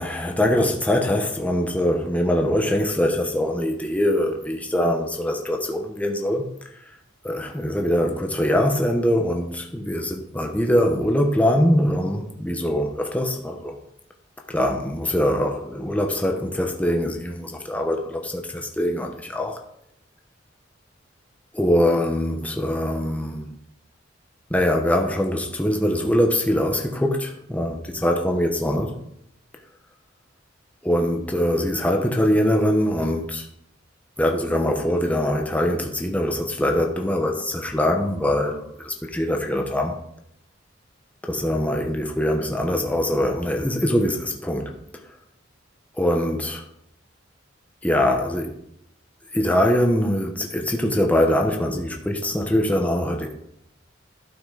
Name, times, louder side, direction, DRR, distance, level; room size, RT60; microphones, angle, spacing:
voice 1, 0.0-6.5 7.2-13.8 14.5-19.6 21.5-23.5 24.5-29.0 30.8-33.5 34.2-40.0 41.3-44.8 46.0-46.6 47.8-48.5 49.3-53.3, equal, 10° left, 0.9 m, -23 dB
12.0 x 6.0 x 3.9 m
head